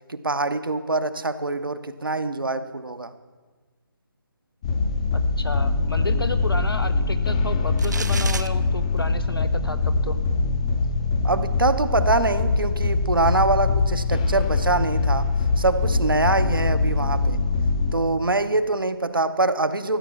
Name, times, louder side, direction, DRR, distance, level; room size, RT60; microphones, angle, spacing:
voice 1, 0.1-3.1 11.2-15.3 15.6-17.4 17.9-20.0, right 2 dB, 70° right, 11 dB, 0.8 m, -24 dB
sound 1, 4.6-17.9, left 3 dB, 15° left, 0.6 m, -23 dB
voice 2, 5.1-10.2, left 2 dB, 80° left, 10 dB, 1.0 m, -32 dB
sound 2, 7.8-8.5, right 4 dB, 50° right, 0.5 m, -31 dB
14.0 x 7.4 x 7.2 m, 1.4 s
figure-of-eight pair, 150°, 12 cm